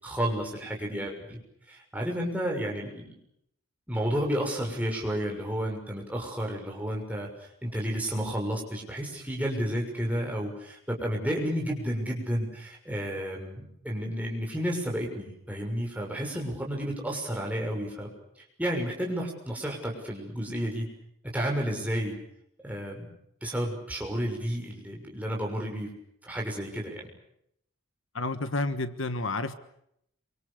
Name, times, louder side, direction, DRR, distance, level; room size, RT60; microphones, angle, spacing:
voice 1, 0.0-1.4 1.7-3.1 3.9-7.3 7.6-18.1 18.6-20.9 21.3-22.2 22.6-23.1 23.4-25.9 26.2-27.1, equal, 5° right, 0 dB, 6.3 m, -31 dB
voice 2, 28.1-29.5, left 2 dB, 65° left, 11 dB, 1.4 m, -30 dB
27.5 x 25.0 x 6.7 m, 0.75 s
head